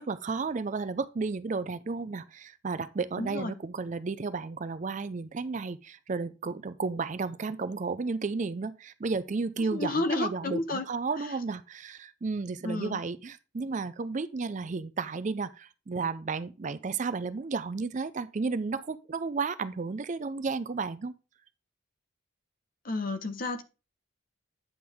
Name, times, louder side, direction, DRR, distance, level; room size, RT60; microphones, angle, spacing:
voice 1, 0.0-21.1, right 4 dB, 35° right, 0.4 m, -33 dB
voice 2, 3.2-3.6 9.7-10.9 11.2-11.3 12.6-13.0 22.8-23.6, left 2 dB, 45° left, 0.8 m, -31 dB
9.3 x 6.1 x 3.5 m
head